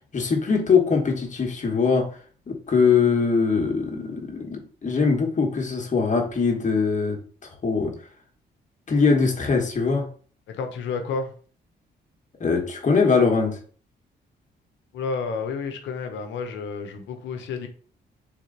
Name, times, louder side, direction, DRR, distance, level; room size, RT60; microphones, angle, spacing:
voice 1, 0.1-2.1 2.5-7.2 7.6-7.9 8.9-10.1 12.4-13.6, left 5 dB, 40° left, 1.3 m, -22 dB
voice 2, 10.5-11.3 14.9-17.7, left 5 dB, 90° left, 0.8 m, -30 dB
3.7 x 3.0 x 3.9 m
cardioid pair, 85°, 19 cm